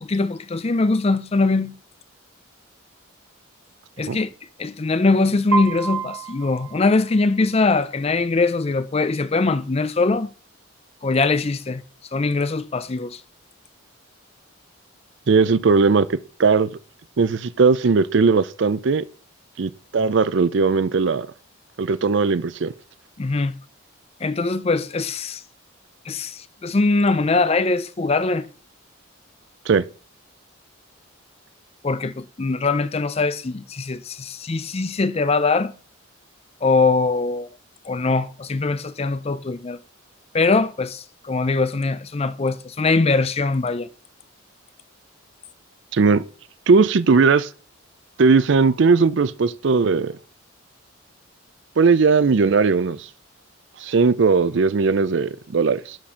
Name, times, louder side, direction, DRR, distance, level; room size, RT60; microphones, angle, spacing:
voice 1, 0.0-1.7 4.0-4.3 4.6-10.3 11.0-11.8 12.1-13.2 23.2-23.5 24.2-25.4 26.1-28.5 31.8-35.7 36.6-37.5 37.9-39.8 40.3-43.9, left 3 dB, 30° left, 0.4 m, -22 dB
Piano, 5.5-7.6, right 5 dB, 90° right, 1.2 m, -29 dB
voice 2, 15.3-16.7 17.2-19.0 19.6-21.3 21.8-22.7 29.7-29.9 45.9-46.2 46.7-47.5 48.2-50.2 51.8-53.1 53.8-56.0, right 4 dB, 55° right, 0.5 m, -18 dB
11.5 x 4.3 x 5.0 m
head